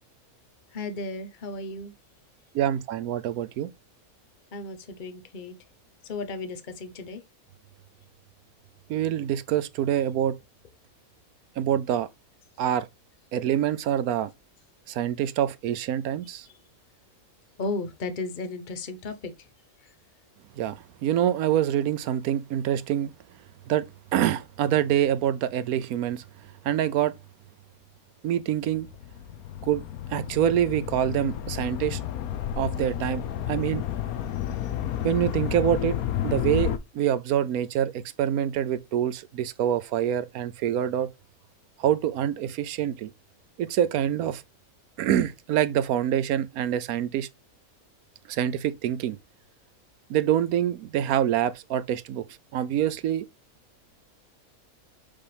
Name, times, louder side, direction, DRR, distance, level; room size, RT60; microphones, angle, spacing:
voice 1, 0.7-1.9 4.5-5.5 6.0-7.2 17.6-19.3, left 3 dB, 35° left, 1.0 m, -34 dB
voice 2, 2.5-3.7 8.9-10.3 11.6-12.1 12.6-12.8 13.3-14.3 14.9-16.4 20.6-23.1 23.7-23.9 24.1-26.2 26.6-27.1 28.2-28.9 29.6-29.8 30.1-32.0 32.6-33.2 33.5-33.8 35.0-36.0 36.2-41.1 41.8-43.1 43.6-44.4 45.0-47.3 48.3-49.2 50.1-52.3 52.5-53.2, right 10 dB, 85° right, 1.1 m, -25 dB
sound 1, 28.8-36.8, left 10 dB, 85° left, 1.2 m, -31 dB
5.6 x 5.3 x 3.4 m
omnidirectional pair, 1.5 m